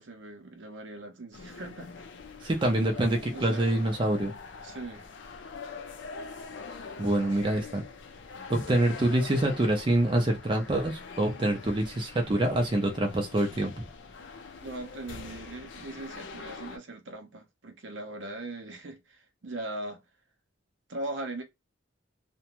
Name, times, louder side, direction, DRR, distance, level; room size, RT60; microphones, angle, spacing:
voice 1, 0.0-1.9 2.4-2.5 3.3-3.7 4.6-5.1 14.6-20.0 20.9-21.4, right 2 dB, 70° right, 0.6 m, -40 dB
sound 1, 1.3-16.8, left 4 dB, 65° left, 0.4 m, -44 dB
voice 2, 2.4-4.3 7.0-7.8 8.5-13.9, right 1 dB, 25° right, 0.5 m, -26 dB
2.5 x 2.1 x 2.9 m
head